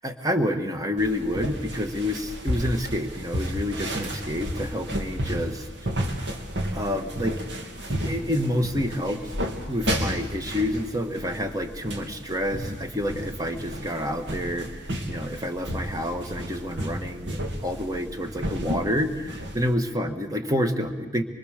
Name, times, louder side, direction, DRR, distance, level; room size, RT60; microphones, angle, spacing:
voice 1, 0.0-5.7 6.1-6.3 6.7-7.4 7.8-9.3 9.7-21.2, equal, 20° right, 6 dB, 1.7 m, -28 dB
sound 1, 1.0-19.7, equal, 70° right, 2.8 m, -32 dB
25.0 x 24.5 x 6.7 m, 1.2 s
head